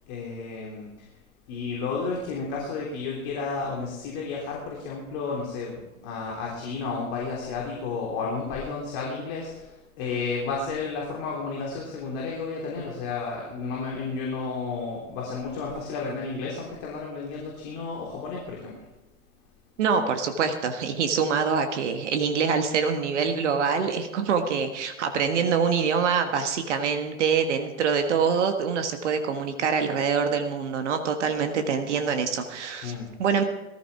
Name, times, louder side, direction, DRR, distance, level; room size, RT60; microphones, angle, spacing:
voice 1, 0.1-1.1 1.5-18.8 32.8-33.1, left 4 dB, 35° left, -2 dB, 3.5 m, -32 dB
voice 2, 19.8-32.9 33.2-33.4, right 6 dB, 55° right, 7 dB, 1.5 m, -25 dB
19.5 x 14.0 x 3.5 m, 1.1 s
figure-of-eight pair, 100°, 43 cm